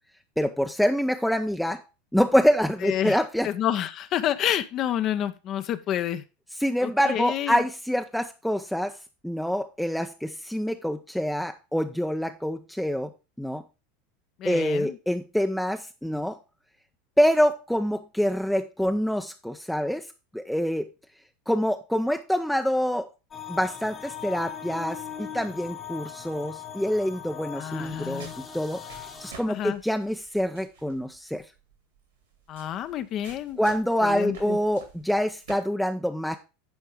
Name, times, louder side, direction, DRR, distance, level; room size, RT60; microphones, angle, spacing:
voice 1, 0.4-1.8 2.1-3.5 6.6-9.0 9.2-13.1 13.4-13.6 14.4-16.4 17.2-20.1 20.3-20.9 21.5-23.1 23.5-28.8 29.2-31.4 33.6-36.4, equal, ahead, 6 dB, 0.6 m, -26 dB
voice 2, 2.8-3.2 3.4-6.2 6.8-7.6 14.4-15.0 27.5-28.3 29.5-29.8 32.5-33.6 34.0-34.6, left 11 dB, 40° left, 11 dB, 0.7 m, -29 dB
sound 1, 23.3-29.3, left 9 dB, 25° left, 1.1 m, -39 dB
sound 2, 27.7-35.5, right 5 dB, 75° right, 3.7 m, -50 dB
10.5 x 4.4 x 4.9 m, 0.30 s
figure-of-eight pair, 80°, 0 cm